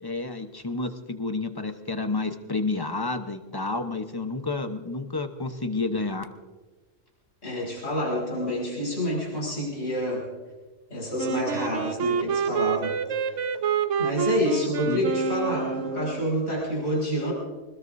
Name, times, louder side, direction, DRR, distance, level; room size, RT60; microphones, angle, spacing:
voice 1, 0.0-6.3 14.9-15.0, left 3 dB, 20° left, 7 dB, 0.9 m, -30 dB
voice 2, 7.4-10.2 10.9-12.9 14.0-17.3, equal, 65° left, -3 dB, 5.9 m, -28 dB
Wind instrument woodwind instrument, 11.2-16.3, right 7 dB, 70° right, 1.2 m, -28 dB
25.0 x 20.5 x 2.7 m, 1.2 s
omnidirectional pair, 1.3 m